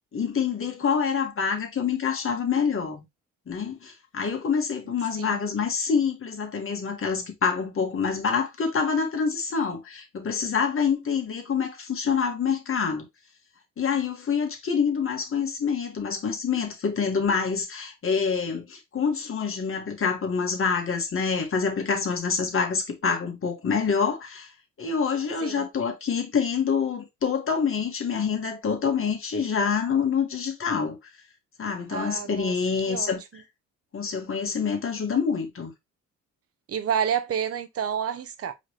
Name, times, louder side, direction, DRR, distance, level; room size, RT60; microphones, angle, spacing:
voice 1, 0.1-3.0 3.5-13.0 13.8-24.5 24.8-31.0 31.6-33.4 33.9-35.7, left 6 dB, 45° left, 1.6 m, -26 dB
voice 2, 31.9-32.5 32.9-33.1 36.7-38.5, right 8 dB, 50° right, 0.8 m, -29 dB
4.9 x 3.2 x 3.3 m
cardioid pair, 90°, 30 cm